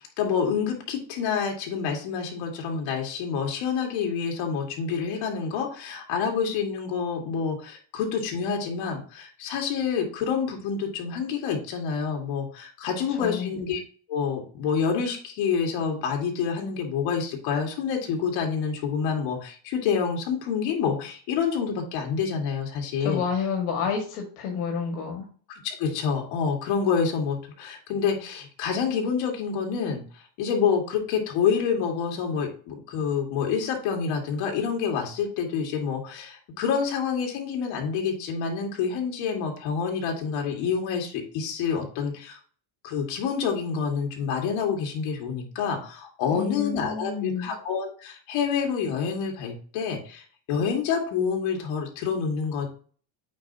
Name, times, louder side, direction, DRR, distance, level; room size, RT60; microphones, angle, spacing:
voice 1, 0.2-13.8 14.1-23.2 25.6-42.4 42.8-52.7, left 6 dB, 65° left, 2 dB, 2.1 m, -27 dB
voice 2, 13.2-13.5 23.0-25.3 46.3-47.5, left 6 dB, 80° left, 1 dB, 2.0 m, -29 dB
8.7 x 4.8 x 2.9 m, 0.42 s
cardioid pair, 160°, 48 cm